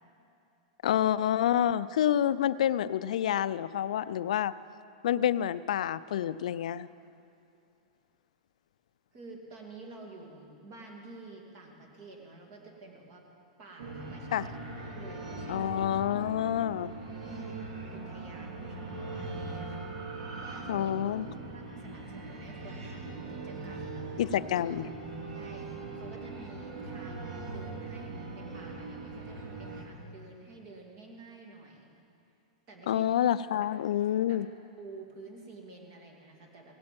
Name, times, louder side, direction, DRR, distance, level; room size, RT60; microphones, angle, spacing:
voice 1, 0.8-4.5 5.0-6.9 14.3-14.5 15.5-16.9 20.7-21.3 24.2-24.9 32.9-34.5, left 10 dB, 75° left, 16 dB, 0.4 m, -28 dB
voice 2, 9.1-13.3 13.6-14.5 14.8-15.8 17.2-17.5 17.9-19.9 20.4-20.9 21.5-24.4 25.3-31.9 32.7-33.0 34.3-34.4 34.8-36.7, right 3 dB, 40° right, 1 dB, 2.4 m, -50 dB
sound 1, 13.8-29.8, right 3 dB, 65° right, 2.2 m, -40 dB
17.5 x 8.6 x 7.7 m, 2.6 s
supercardioid pair, 165°, 4 cm